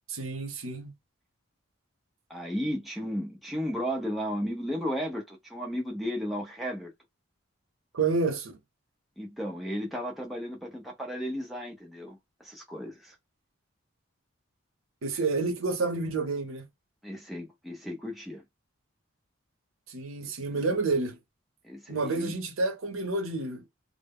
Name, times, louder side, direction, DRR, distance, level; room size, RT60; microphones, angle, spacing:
voice 1, 0.1-0.9 7.9-8.6 15.0-16.6 19.9-21.2 21.9-23.7, right 3 dB, 85° right, 0.7 m, -29 dB
voice 2, 2.3-6.9 9.2-13.1 17.0-18.4 20.5-20.6 21.6-22.3, equal, ahead, 0.5 m, -34 dB
2.0 x 2.0 x 3.5 m
head